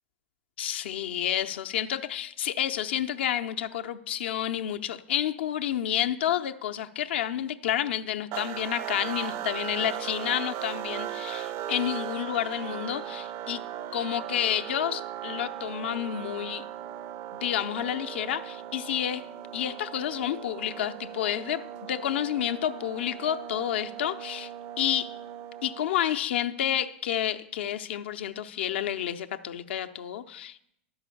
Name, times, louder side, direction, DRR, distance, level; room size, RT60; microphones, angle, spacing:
voice 1, 0.6-13.6 13.9-16.6 17.3-19.3 19.5-24.5 24.8-25.1 25.6-30.6, left 10 dB, 75° left, 8 dB, 0.8 m, -30 dB
sound 1, 8.3-26.2, right 11 dB, 45° right, 0.5 m, -38 dB
11.5 x 5.6 x 7.0 m, 0.74 s
hypercardioid pair, 100°, 6 cm